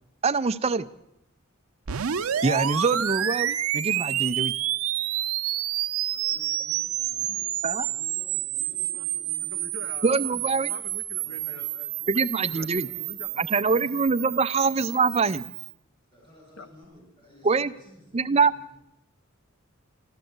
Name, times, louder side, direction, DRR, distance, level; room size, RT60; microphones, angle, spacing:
voice 1, 0.2-0.9 2.4-4.5 7.6-7.9 10.0-10.7 12.1-12.9 13.4-15.5 17.4-17.7 18.1-18.5, right 4 dB, 30° right, 12 dB, 0.5 m, -24 dB
sound 1, 1.9-15.7, right 12 dB, 90° right, 0.6 m, -29 dB
voice 2, 6.1-9.9 10.2-10.7 11.2-11.7 12.7-13.9 16.1-18.7, left 1 dB, 20° left, -4 dB, 7.3 m, -53 dB
voice 3, 9.5-13.3 14.7-14.9 16.6-16.7, left 4 dB, 70° left, 8 dB, 0.8 m, -45 dB
13.0 x 12.5 x 7.9 m, 0.84 s
head